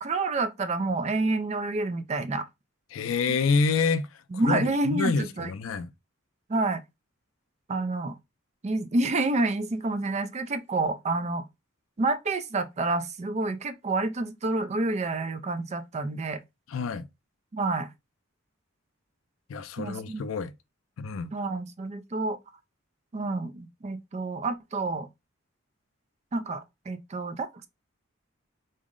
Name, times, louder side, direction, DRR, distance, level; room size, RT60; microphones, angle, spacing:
voice 1, 0.0-2.5 4.3-5.5 6.5-6.8 7.7-8.2 8.6-11.4 12.0-16.4 17.5-17.9 19.8-20.3 21.3-22.4 23.1-25.1 26.3-27.7, right 2 dB, 35° right, 0.4 m, -28 dB
voice 2, 2.9-4.1 4.4-5.9 16.7-17.1 19.5-20.5 21.0-21.3, left 4 dB, 75° left, 0.4 m, -27 dB
3.9 x 2.0 x 3.6 m
head